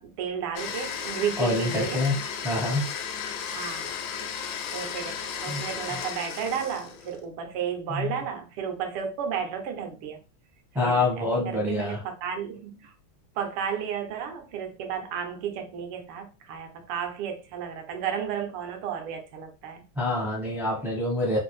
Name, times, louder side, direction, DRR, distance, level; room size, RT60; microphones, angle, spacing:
voice 1, 0.0-2.0 2.5-2.9 3.3-3.9 4.7-10.2 10.8-12.9 13.4-19.8, right 8 dB, 85° right, 1.7 m, -33 dB
Domestic sounds home sounds, 0.6-7.2, left 7 dB, 80° left, 0.9 m, -34 dB
voice 2, 1.4-2.2 2.4-2.8 5.5-5.6 7.9-8.1 10.7-12.0 20.0-21.4, left 2 dB, 5° right, 0.4 m, -26 dB
3.9 x 2.5 x 3.1 m
omnidirectional pair, 2.4 m